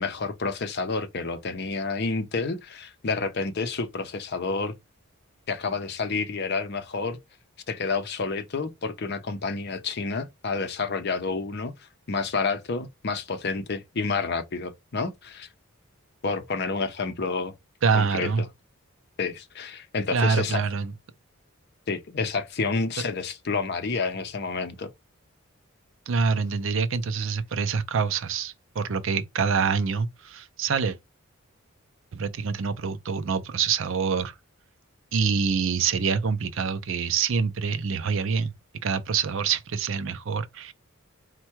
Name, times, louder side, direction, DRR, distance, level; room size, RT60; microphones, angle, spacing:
voice 1, 0.0-4.7 5.5-7.2 7.7-15.5 16.2-17.5 17.9-18.5 19.2-20.6 21.9-24.9, left 4 dB, 50° left, 0.6 m, -29 dB
voice 2, 17.8-18.4 20.1-20.9 26.1-31.0 32.1-34.3 35.1-38.5 38.8-40.7, right 5 dB, 60° right, 0.5 m, -26 dB
4.4 x 2.2 x 4.4 m
head